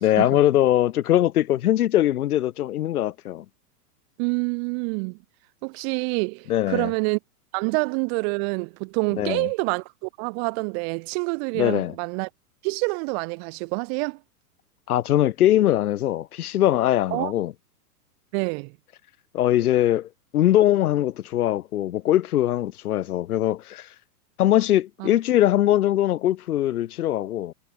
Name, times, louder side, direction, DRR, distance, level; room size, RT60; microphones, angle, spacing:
voice 1, 0.0-3.4 6.5-6.9 9.2-9.5 11.5-11.9 14.9-17.5 19.3-23.9 24.4-27.5, left 13 dB, 70° left, 3.1 m, -21 dB
voice 2, 4.2-5.2 5.6-7.2 7.5-12.3 12.6-14.2 17.1-17.3 18.3-18.7 25.0-25.1, right 38 dB, 40° right, 5.2 m, -27 dB
hypercardioid pair, 145°, 46 cm